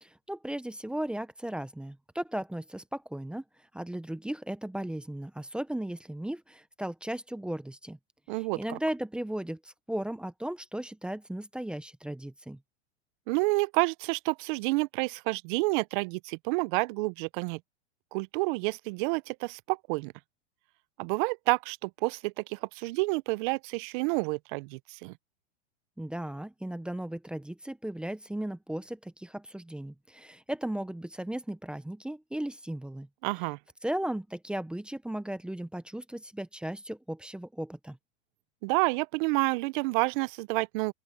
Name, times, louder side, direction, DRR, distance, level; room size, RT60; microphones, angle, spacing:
voice 1, 0.0-3.4 3.7-8.0 8.5-12.6 26.0-33.1 33.8-38.0, right 1 dB, 5° right, 0.9 m, -36 dB
voice 2, 8.3-8.8 13.3-17.6 18.1-20.1 21.0-25.1 33.2-33.6 38.6-40.9, right 25 dB, 45° right, 0.7 m, -29 dB
open air
hypercardioid pair, 130°, 34 cm